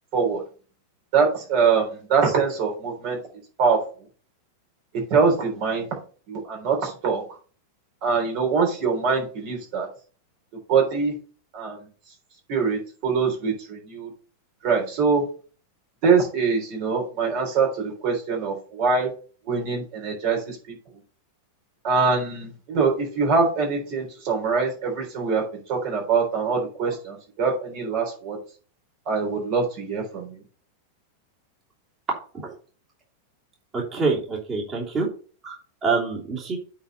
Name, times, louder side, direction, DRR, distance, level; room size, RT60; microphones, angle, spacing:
voice 1, 1.1-3.2 3.6-3.8 4.9-5.9 6.3-7.2 8.0-9.9 10.7-11.1 11.5-11.8 12.5-14.1 14.6-15.2 16.0-19.1 19.5-20.8 21.8-28.4 29.1-30.4, right 5 dB, 55° right, 2 dB, 3.6 m, -23 dB
voice 2, 33.7-35.1 35.4-35.5 35.8-36.6, right 4 dB, 30° right, -4 dB, 3.1 m, -25 dB
8.7 x 4.2 x 5.4 m, 0.40 s
hypercardioid pair, 125°, 0 cm